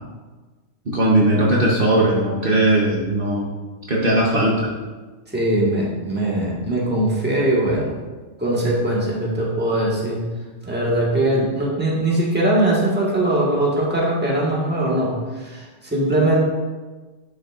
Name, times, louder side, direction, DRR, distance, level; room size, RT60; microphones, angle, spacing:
voice 1, 0.9-3.4 3.9-4.7, right 1 dB, 50° right, -4 dB, 1.1 m, -18 dB
voice 2, 5.3-7.9 8.4-10.2 10.6-16.4, right 1 dB, 10° right, -4 dB, 1.4 m, -21 dB
10.5 x 5.8 x 2.4 m, 1.3 s
omnidirectional pair, 1.3 m